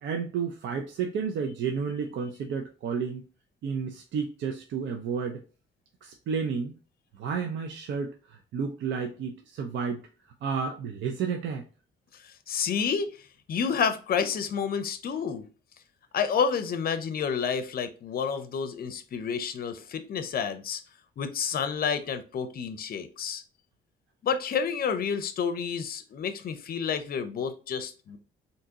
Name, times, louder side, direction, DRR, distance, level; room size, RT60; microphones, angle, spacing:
voice 1, 0.0-3.3 3.6-5.4 6.0-6.7 7.2-10.0 10.4-11.6, right 6 dB, 70° right, 0.5 m, -31 dB
voice 2, 12.2-15.4 16.1-20.8 21.2-23.4 24.2-28.2, left 6 dB, 50° left, 0.5 m, -30 dB
3.5 x 2.8 x 2.8 m
cardioid pair, 90°, 20 cm